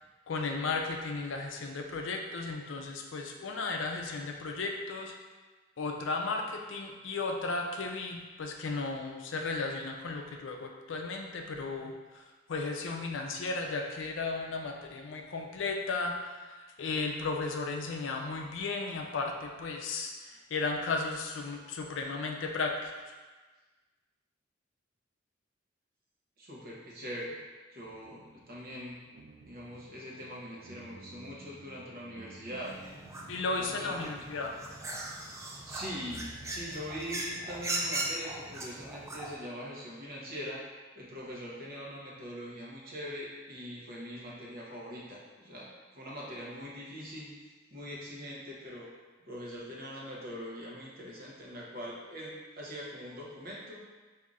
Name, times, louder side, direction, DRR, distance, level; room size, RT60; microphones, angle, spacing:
voice 1, 0.3-5.1 5.8-12.2 12.5-23.1 33.3-34.5, left 3 dB, 70° left, 2 dB, 0.5 m, -35 dB
voice 2, 26.4-27.4 27.7-29.0 29.4-32.8 33.5-34.1 35.7-40.6 41.0-45.7 45.9-47.3 47.7-48.9 49.3-53.8, equal, 50° right, -5 dB, 0.9 m, -42 dB
sound 1, 27.8-33.4, right 3 dB, 90° right, 0.5 m, -54 dB
sound 2, 32.6-39.3, right 1 dB, 15° right, 0.3 m, -39 dB
5.2 x 2.7 x 2.4 m, 1.3 s
head